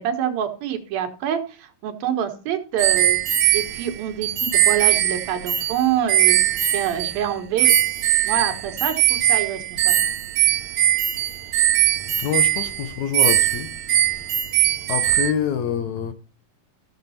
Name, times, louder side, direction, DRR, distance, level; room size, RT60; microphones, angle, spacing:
voice 1, 0.0-3.2 3.5-7.8 8.2-10.0, right 9 dB, 85° right, 3.3 m, -26 dB
sound 1, 2.8-7.3 7.6-15.3, right 12 dB, 70° right, 1.7 m, -20 dB
voice 2, 12.2-13.7 14.7-16.1, left 8 dB, 70° left, 1.9 m, -26 dB
15.0 x 6.7 x 4.3 m
omnidirectional pair, 4.0 m